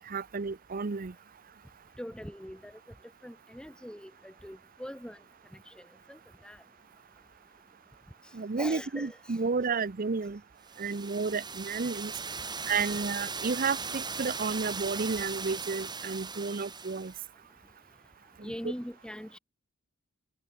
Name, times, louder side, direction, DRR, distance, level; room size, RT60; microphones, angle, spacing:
voice 1, 0.1-1.1 8.3-10.4 10.8-12.1 12.7-17.1 18.4-18.5, right 4 dB, 45° right, 0.6 m, -32 dB
voice 2, 2.0-2.8 3.2-5.2 5.5-6.6 8.6-9.5 12.7-12.9 18.4-19.4, equal, 5° left, 4.1 m, -42 dB
sound 1, 10.7-17.2, right 5 dB, 20° right, 4.0 m, -38 dB
head